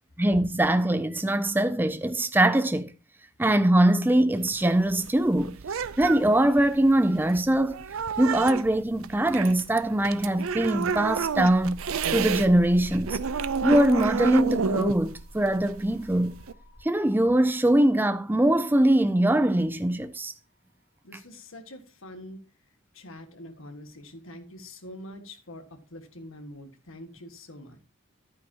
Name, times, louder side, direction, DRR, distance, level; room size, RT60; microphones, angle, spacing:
voice 1, 0.2-2.9 3.4-5.6 6.0-7.8 8.2-13.2 13.6-16.4 16.8-20.3, right 1 dB, 10° right, 0.4 m, -22 dB
sound 1, 4.4-12.5 12.8-16.5, right 6 dB, 80° right, 0.5 m, -30 dB
sound 2, 10.5-20.2, right 1 dB, 50° left, 5.6 m, -45 dB
voice 2, 21.0-22.4 22.9-27.8, left 1 dB, 75° left, 1.7 m, -44 dB
11.5 x 9.4 x 2.9 m
head